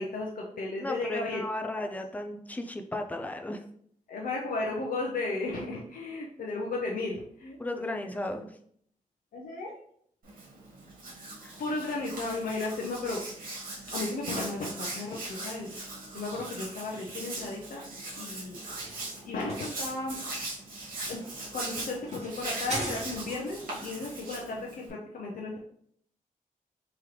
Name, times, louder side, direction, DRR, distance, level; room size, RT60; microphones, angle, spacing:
voice 1, 0.0-1.4 1.7-1.9 4.1-7.9 9.3-9.7 11.6-13.2 13.9-15.7 16.1-17.8 18.2-18.6 19.2-20.2 21.1-21.2 21.5-25.6, left 3 dB, 80° left, -2 dB, 0.6 m, -34 dB
voice 2, 0.8-3.6 7.6-8.5 11.4-11.5, left 1 dB, 10° left, 4 dB, 0.3 m, -35 dB
Hands, 10.2-24.9, right 2 dB, 80° right, 1.6 m, -40 dB
sound 1, 18.4-23.6, right 1 dB, 50° right, 1.5 m, -41 dB
3.7 x 3.0 x 3.2 m, 0.66 s
wide cardioid pair, 140°, 14 cm